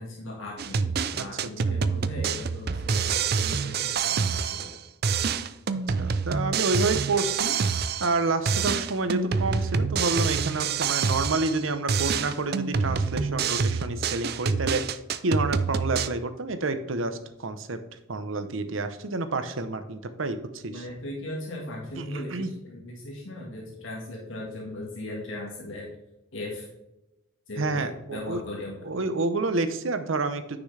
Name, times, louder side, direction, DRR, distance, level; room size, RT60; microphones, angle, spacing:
voice 1, 0.0-4.8 20.7-25.9 26.3-26.7 27.5-28.8, left 1 dB, 75° left, -2 dB, 1.8 m, -38 dB
sound 1, 0.6-4.8 5.0-8.2 8.4-11.6 11.9-16.1, right 5 dB, 50° right, 0.4 m, -27 dB
voice 2, 5.7-7.6 8.0-17.8 18.1-20.9 22.0-22.5 27.6-28.4 28.8-30.6, right 3 dB, 75° right, 9 dB, 0.8 m, -29 dB
9.7 x 6.1 x 3.3 m, 0.94 s
head